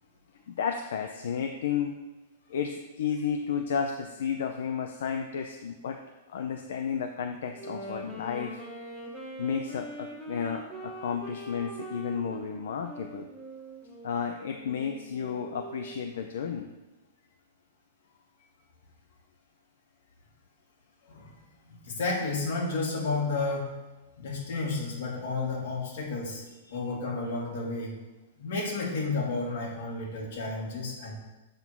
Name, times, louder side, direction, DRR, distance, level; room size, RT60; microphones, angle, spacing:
voice 1, 0.5-1.9 2.5-6.0 6.3-8.6 9.4-13.3 14.0-16.7 26.7-26.8, left 7 dB, 70° left, 4 dB, 0.6 m, -32 dB
Wind instrument woodwind instrument, 7.5-16.2, right 1 dB, ahead, 0.9 m, -42 dB
voice 2, 21.7-23.7 24.2-26.4 26.7-27.9 28.4-31.2, left 3 dB, 50° left, -3 dB, 2.5 m, -31 dB
8.0 x 3.8 x 6.0 m, 1.1 s
supercardioid pair, 175°, 0 cm